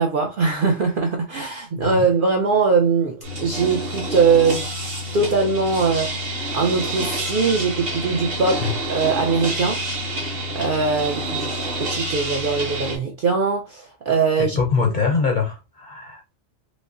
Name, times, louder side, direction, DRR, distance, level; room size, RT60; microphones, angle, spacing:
voice 1, 0.0-4.7 5.1-9.8 10.5-14.6, right 4 dB, 60° right, 0.5 m, -21 dB
sound 1, 3.2-13.0, right 1 dB, 45° right, 1.3 m, -28 dB
voice 2, 14.4-16.2, left 5 dB, 55° left, 0.5 m, -23 dB
5.2 x 2.0 x 2.5 m
omnidirectional pair, 1.4 m